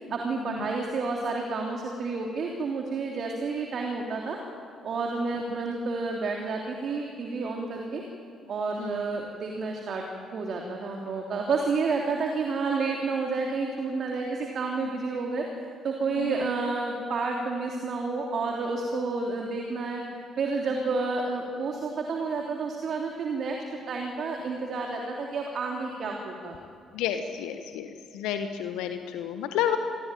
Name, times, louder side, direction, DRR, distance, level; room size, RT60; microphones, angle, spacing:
voice 1, 0.1-4.4 4.8-8.0 8.5-10.0 10.3-15.5 15.8-20.0 20.4-23.6 23.9-26.5, right 4 dB, 55° right, 1 dB, 3.2 m, -30 dB
voice 2, 26.9-29.8, left 10 dB, 70° left, 7 dB, 1.4 m, -31 dB
26.5 x 21.0 x 9.2 m, 2.3 s
figure-of-eight pair, 45°, 0 cm